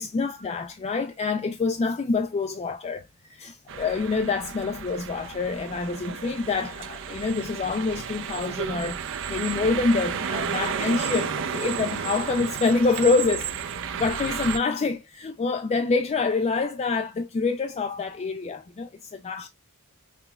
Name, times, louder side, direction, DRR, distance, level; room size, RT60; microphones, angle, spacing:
voice 1, 0.0-19.5, left 4 dB, 30° left, 0.4 m, -26 dB
sound 1, 3.7-14.6, right 7 dB, 60° right, 0.6 m, -32 dB
5.8 x 2.2 x 2.2 m
head